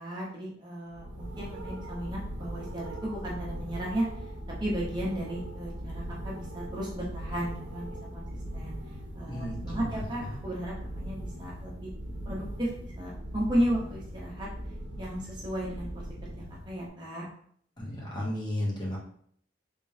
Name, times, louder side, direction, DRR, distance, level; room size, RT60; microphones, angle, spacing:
voice 1, 0.0-4.1 4.6-8.3 8.5-8.7 9.1-11.9 12.3-14.5 15.0-17.3, equal, 25° right, -4 dB, 0.8 m, -34 dB
sound 1, 0.9-16.9, right 1 dB, 75° right, 0.7 m, -40 dB
voice 2, 9.3-9.9 17.8-19.0, left 1 dB, 25° left, -5 dB, 0.9 m, -33 dB
3.7 x 3.5 x 2.7 m, 0.62 s
head